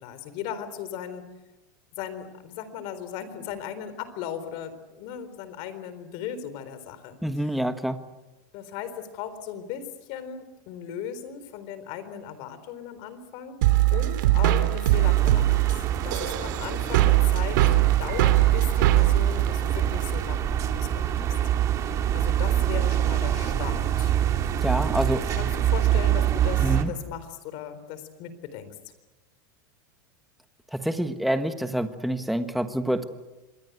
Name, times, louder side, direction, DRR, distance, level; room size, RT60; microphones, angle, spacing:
voice 1, 0.0-1.2 2.0-7.2 8.5-13.6 13.9-21.1 22.1-24.1 25.3-28.8, left 9 dB, 50° left, 12 dB, 4.0 m, -37 dB
voice 2, 7.2-8.0 24.6-25.2 26.6-26.9 30.7-33.0, right 1 dB, ahead, 8 dB, 1.4 m, -27 dB
sound 1, 13.6-20.3, right 16 dB, 70° right, 2.9 m, -22 dB
sound 2, 14.9-26.8, right 10 dB, 30° right, 2.4 m, -25 dB
27.0 x 21.0 x 8.1 m, 1.1 s
supercardioid pair, 145°, 11 cm